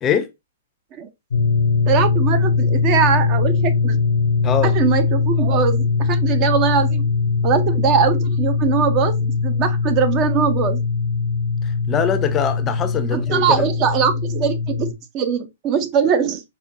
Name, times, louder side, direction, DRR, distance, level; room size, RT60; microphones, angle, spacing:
sound 1, 1.3-14.9, left 5 dB, 75° left, 0.6 m, -20 dB
voice 1, 1.9-4.0 4.6-7.1 7.4-10.8 13.1-16.4, right 7 dB, 35° right, 0.5 m, -21 dB
voice 2, 11.9-13.7, left 7 dB, 25° left, 0.4 m, -22 dB
5.0 x 2.2 x 2.5 m
hypercardioid pair, 120°, 0 cm